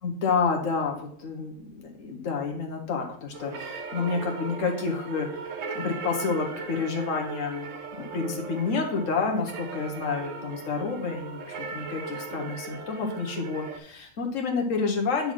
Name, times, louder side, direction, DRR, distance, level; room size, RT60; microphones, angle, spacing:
voice 1, 0.0-5.4 5.7-7.7 8.0-15.3, left 4 dB, 70° left, 2 dB, 1.5 m, -29 dB
sound 1, 3.3-13.8, right 4 dB, 70° right, 1.2 m, -38 dB
8.6 x 4.2 x 4.6 m, 0.65 s
omnidirectional pair, 1.4 m